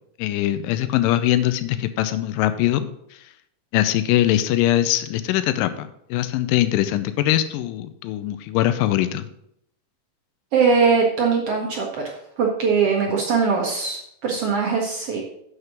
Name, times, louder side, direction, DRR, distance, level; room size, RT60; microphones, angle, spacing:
voice 1, 0.2-2.9 3.7-9.3, left 13 dB, 80° left, 12 dB, 2.2 m, -22 dB
voice 2, 10.5-11.9 12.4-15.2, right 5 dB, 65° right, 0 dB, 1.5 m, -21 dB
7.5 x 6.5 x 5.9 m, 0.75 s
omnidirectional pair, 4.1 m